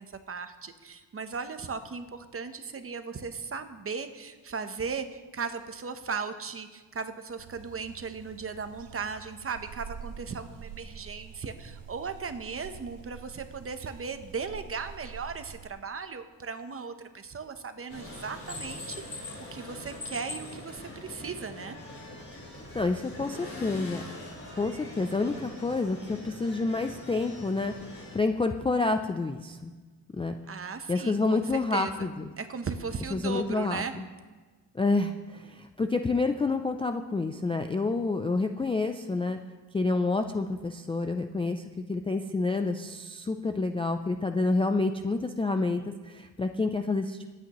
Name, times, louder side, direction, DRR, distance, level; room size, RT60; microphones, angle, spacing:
voice 1, 0.0-19.2 19.5-21.8 30.5-32.1 32.4-33.9, right 5 dB, 30° right, 9 dB, 0.9 m, -37 dB
sound 1, 7.4-15.7, right 8 dB, 80° right, 0.8 m, -47 dB
sound 2, 17.9-28.2, left 1 dB, 30° left, 3.7 m, -42 dB
voice 2, 22.7-24.0 24.5-29.7 30.2-30.4 30.9-32.2 33.1-33.8 34.7-39.4 39.7-47.3, left 3 dB, 15° left, 6 dB, 0.3 m, -28 dB
23.5 x 8.7 x 3.0 m, 1.4 s
cardioid pair, 120°, 42 cm